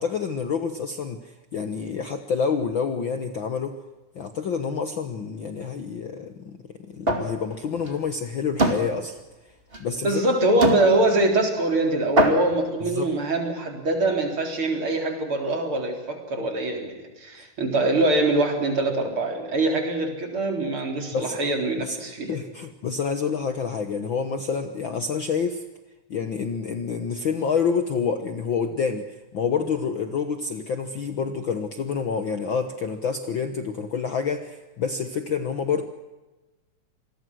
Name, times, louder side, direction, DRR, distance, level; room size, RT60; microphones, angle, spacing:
voice 1, 0.0-3.8 4.1-6.6 6.9-9.2 9.8-10.2 12.8-13.1 17.4-17.5 21.1-21.4 21.8-22.0 22.3-25.6 26.1-29.1 29.3-35.8, left 6 dB, 55° left, 8 dB, 1.6 m, -28 dB
sound 1, 7.1-7.3 7.7-7.9 8.6-8.8 9.7-9.8 10.6-10.9 11.7-11.8 12.2-12.6, right 1 dB, 20° right, 2.6 m, -22 dB
voice 2, 10.0-22.4, right 2 dB, 45° right, 3 dB, 4.7 m, -23 dB
27.5 x 20.5 x 6.3 m, 1.1 s
omnidirectional pair, 3.3 m